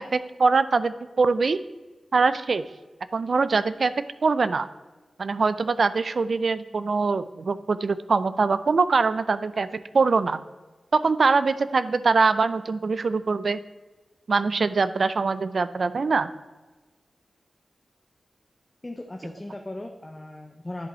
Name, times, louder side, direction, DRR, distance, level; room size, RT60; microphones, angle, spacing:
voice 1, 0.0-1.6 2.1-2.6 3.1-3.9 4.2-4.7 5.2-9.7 9.9-10.4 10.9-13.6 14.3-16.3, right 4 dB, 60° right, 14 dB, 0.4 m, -23 dB
voice 2, 18.8-20.9, left 1 dB, 20° left, 3 dB, 0.7 m, -37 dB
10.0 x 5.4 x 4.3 m, 1.2 s
wide cardioid pair, 100°, 0 cm